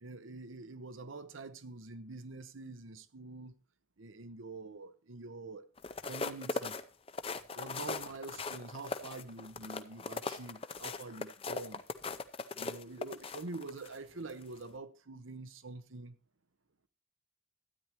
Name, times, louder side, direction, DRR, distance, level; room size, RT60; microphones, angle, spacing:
voice 1, 0.0-3.6 4.0-5.6 6.0-6.8 7.5-11.8 12.5-16.1, right 3 dB, 85° right, 0.9 m, -46 dB
sound 1, 5.8-14.0 14.4-14.6, left 4 dB, 30° left, 0.5 m, -39 dB
12.5 x 9.5 x 3.0 m
head